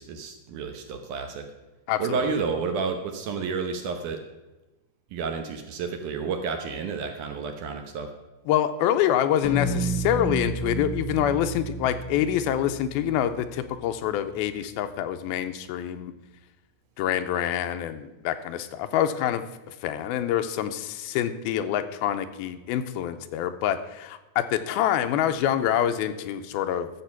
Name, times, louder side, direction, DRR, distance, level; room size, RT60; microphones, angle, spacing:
voice 1, 0.0-1.5 2.0-4.2 5.1-8.1, right 5 dB, 70° right, 5 dB, 2.1 m, -30 dB
voice 2, 1.9-2.4 8.5-16.1 17.0-26.9, left 10 dB, 90° left, 9 dB, 2.6 m, -26 dB
sound 1, 9.4-14.0, right 2 dB, 65° left, 1.3 m, -31 dB
13.0 x 7.4 x 5.9 m, 1.1 s
omnidirectional pair, 4.3 m